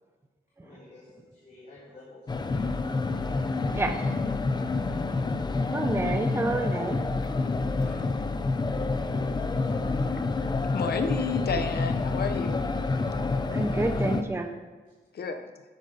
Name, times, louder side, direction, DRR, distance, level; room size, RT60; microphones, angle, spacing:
voice 1, 0.6-2.8 4.9-5.2 7.8-8.1 9.6-9.7, left 2 dB, 50° left, -6 dB, 3.3 m, -52 dB
sound 1, 2.3-14.2, left 3 dB, 25° left, 0.7 m, -28 dB
voice 2, 5.7-7.0 13.5-14.5, right 2 dB, 15° right, 6 dB, 0.7 m, -28 dB
voice 3, 10.7-12.7 15.1-15.5, left 5 dB, 75° left, 8 dB, 1.1 m, -31 dB
12.5 x 9.8 x 5.5 m, 1.3 s
wide cardioid pair, 170°, 16 cm